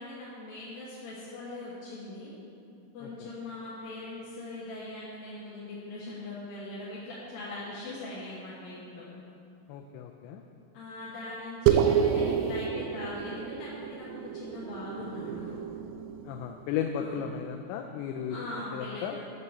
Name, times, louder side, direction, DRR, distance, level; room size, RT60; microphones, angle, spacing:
voice 1, 0.0-2.3 2.9-9.0 10.7-14.1 14.3-15.6 17.0-17.2 18.3-19.2, left 2 dB, 65° left, -8 dB, 2.7 m, -41 dB
voice 2, 9.7-10.4 16.3-18.4 18.7-19.2, left 8 dB, 85° left, 4 dB, 2.9 m, -34 dB
sound 1, 11.7-16.4, right 8 dB, 85° right, 2.6 m, -29 dB
9.8 x 6.7 x 6.5 m, 2.6 s
omnidirectional pair, 5.3 m